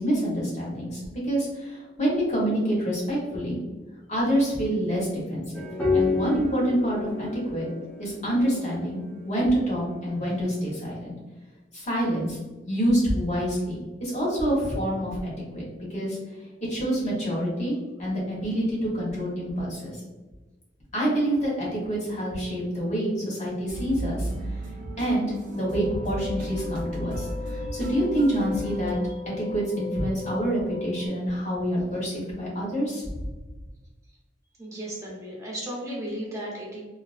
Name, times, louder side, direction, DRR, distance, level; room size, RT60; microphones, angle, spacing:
voice 1, 0.0-3.6 4.1-5.6 5.9-7.7 8.0-11.1 11.7-12.4 12.7-15.6 15.9-16.2 16.7-19.9 20.9-24.3 25.0-29.0 29.5-33.0, equal, 40° left, -5 dB, 1.1 m, -27 dB
sound 1, 5.5-10.5, left 4 dB, 10° left, 0.6 m, -30 dB
sound 2, 23.7-28.9, right 1 dB, 45° right, 0.4 m, -34 dB
sound 3, 25.5-31.1, left 3 dB, 70° left, 1.1 m, -37 dB
voice 2, 34.6-36.9, right 1 dB, 15° right, -5 dB, 0.9 m, -35 dB
2.6 x 2.4 x 2.4 m, 1.2 s
head